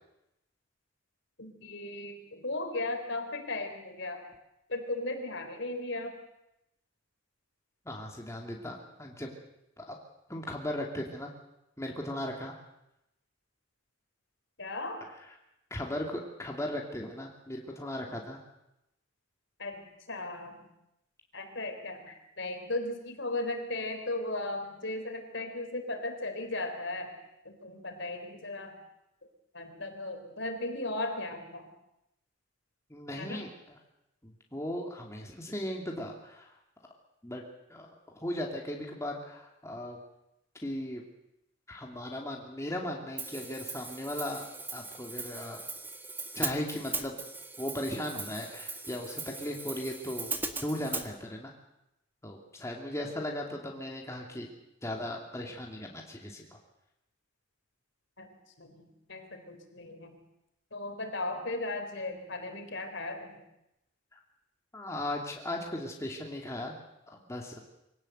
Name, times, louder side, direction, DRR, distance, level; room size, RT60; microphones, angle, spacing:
voice 1, 1.4-4.3 4.7-6.2 14.6-15.0 19.6-20.7 21.3-27.2 27.5-28.8 29.5-31.6 33.2-33.4 58.2-58.3 58.6-60.2 60.7-63.4, left 2 dB, 60° left, 6 dB, 3.8 m, -36 dB
voice 2, 7.8-9.3 9.8-10.0 10.3-11.3 11.8-12.6 15.7-18.4 32.9-33.8 34.2-36.5 37.2-37.4 37.7-37.9 38.1-40.0 40.6-41.0 41.7-44.5 44.7-45.6 46.3-47.2 47.6-50.3 50.6-51.5 52.2-54.5 54.8-56.6 64.1-64.2 64.7-66.7 67.1-67.6, left 1 dB, 15° left, 0 dB, 2.7 m, -37 dB
Hi-hat, 43.2-51.1, right 3 dB, 10° right, 1.4 m, -39 dB
24.0 x 17.5 x 8.0 m, 0.86 s
head